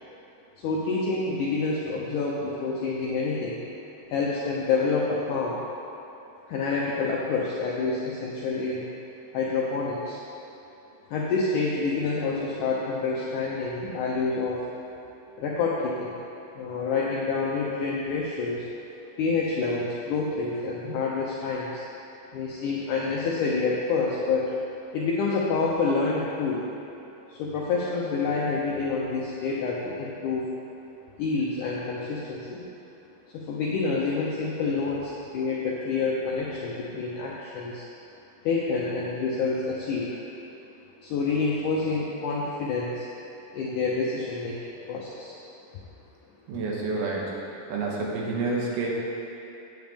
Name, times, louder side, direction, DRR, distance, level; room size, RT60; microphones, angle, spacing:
voice 1, 0.6-3.6 4.1-5.6 6.5-8.8 9.3-10.2 11.1-14.6 15.4-16.2 16.5-18.7 19.2-21.8 22.3-24.5 24.9-26.6 27.3-30.5 31.2-32.7 33.3-37.8 38.4-40.1 41.0-43.1 43.5-44.6 44.9-45.4, left 4 dB, 75° left, -5 dB, 1.9 m, -27 dB
voice 2, 46.5-47.4 47.7-48.9, right 3 dB, 90° right, -3 dB, 3.1 m, -29 dB
9.2 x 8.1 x 3.5 m, 3.0 s
omnidirectional pair, 4.3 m